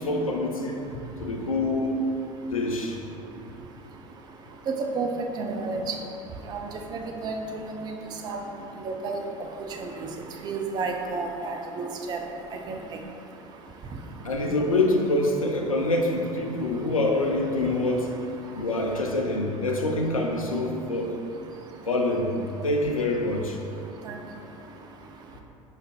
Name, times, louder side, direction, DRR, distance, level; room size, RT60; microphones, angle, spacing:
voice 1, 0.0-2.0 2.5-3.0 14.2-18.1 18.5-21.2 21.9-23.6, left 2 dB, 80° left, 1 dB, 0.5 m, -26 dB
voice 2, 4.7-5.1 5.4-5.9 6.5-6.6 6.9-7.7 8.2-8.4 8.8-9.2 9.8-9.9 10.4-12.2 12.7-12.8 24.1-24.2, right 4 dB, 25° right, 2 dB, 0.4 m, -30 dB
5.0 x 4.1 x 2.3 m, 2.8 s
figure-of-eight pair, 70°, 17 cm